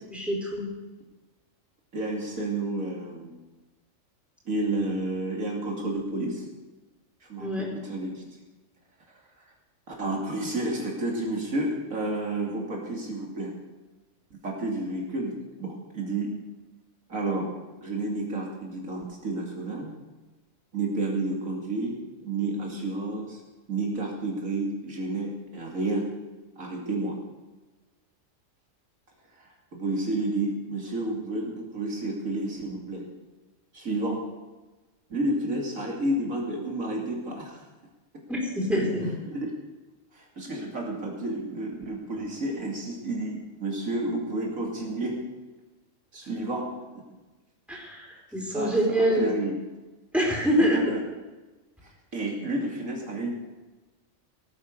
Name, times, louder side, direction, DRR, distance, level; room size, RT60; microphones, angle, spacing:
voice 1, 0.1-0.7 7.4-7.7 38.3-39.1 47.7-49.3 50.1-50.8, equal, ahead, -3 dB, 4.5 m, -25 dB
voice 2, 1.9-3.3 4.4-6.4 7.2-8.2 9.9-13.5 14.4-15.3 15.6-16.3 17.1-17.5 17.8-19.9 20.7-22.0 22.2-23.4 23.7-26.1 26.6-27.2 29.4-33.1 33.7-34.2 35.1-37.6 39.2-39.5 40.1-45.2 46.1-46.7 48.5-49.6 50.6-51.0 51.8-53.3, right 2 dB, 85° right, -1 dB, 3.1 m, -30 dB
17.5 x 9.6 x 6.6 m, 1.2 s
omnidirectional pair, 1.4 m